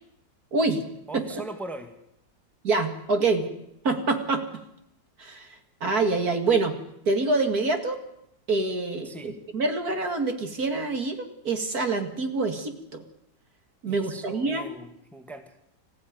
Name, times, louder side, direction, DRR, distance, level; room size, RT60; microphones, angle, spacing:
voice 1, 0.5-0.8 1.1-1.2 2.6-3.5 3.8-4.5 5.2-6.7 7.1-8.0 8.5-13.0 13.8-14.7, right 3 dB, 55° right, 6 dB, 2.5 m, -26 dB
voice 2, 1.1-1.9 9.0-9.4 13.9-15.6, right 2 dB, ahead, 5 dB, 2.0 m, -40 dB
25.5 x 15.5 x 9.5 m, 0.82 s
omnidirectional pair, 2.0 m